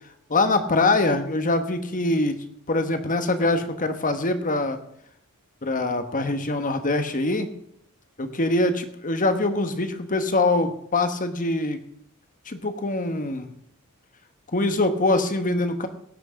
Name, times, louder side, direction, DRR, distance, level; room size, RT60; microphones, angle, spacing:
voice 1, 0.3-2.4 2.7-4.8 5.6-7.5 8.2-11.8 12.5-13.5 14.5-15.9, left 2 dB, 35° left, 8 dB, 1.2 m, -23 dB
17.5 x 6.2 x 6.2 m, 0.74 s
head